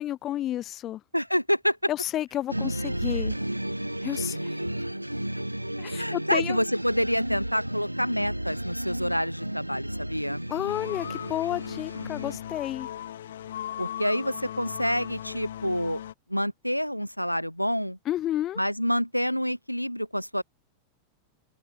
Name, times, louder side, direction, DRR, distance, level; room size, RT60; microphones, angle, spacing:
voice 1, 0.0-1.0 1.9-3.4 4.0-4.6 5.8-6.6 10.5-12.9 18.0-18.6, left 12 dB, 30° left, 3.2 m, -31 dB
voice 2, 1.1-1.8 6.0-10.5 13.8-16.0 16.3-18.0 18.6-20.4, equal, 90° left, 0.6 m, -27 dB
sound 1, 2.5-12.4, right 1 dB, 90° right, 0.8 m, -33 dB
sound 2, 10.7-16.1, left 11 dB, 60° left, 3.4 m, -38 dB
open air
figure-of-eight pair, 90°, 0 cm